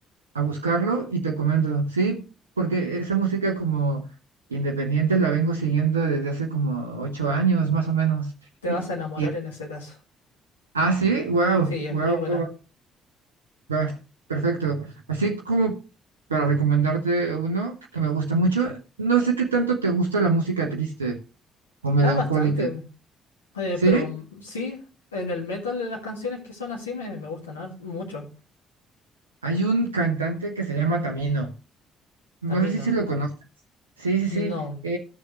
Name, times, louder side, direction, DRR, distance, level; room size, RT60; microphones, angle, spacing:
voice 1, 0.3-2.2 2.6-4.1 4.5-8.3 8.7-8.8 9.2-9.3 10.7-12.5 13.7-14.0 14.3-15.8 16.3-21.2 21.8-22.7 23.8-24.1 29.4-31.5 32.4-33.3 34.0-34.6 34.8-35.0, right 4 dB, 80° right, 0 dB, 0.9 m, -24 dB
voice 2, 8.6-10.0 11.7-12.4 22.0-22.8 23.5-24.8 25.1-28.3 32.5-32.9 34.3-34.8, left 3 dB, 80° left, -2 dB, 2.0 m, -31 dB
13.0 x 6.4 x 3.1 m, 0.34 s
figure-of-eight pair, 45°, 0 cm